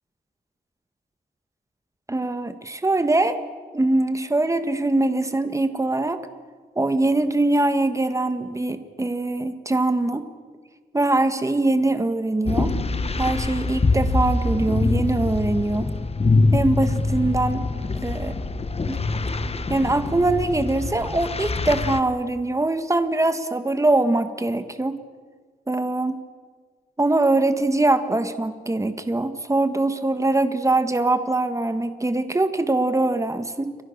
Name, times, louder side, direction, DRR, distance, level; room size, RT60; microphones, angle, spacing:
voice 1, 2.1-3.4 3.7-6.2 6.7-10.3 10.9-12.8 13.2-15.9 16.5-17.7 18.0-18.4 18.9-19.0 19.7-25.0 25.7-26.2 27.0-33.8, right 2 dB, 20° right, 9 dB, 1.6 m, -22 dB
sound 1, 12.5-22.0, left 3 dB, 35° left, 1.3 m, -24 dB
29.5 x 23.5 x 6.7 m, 1.5 s
wide cardioid pair, 115°, 17 cm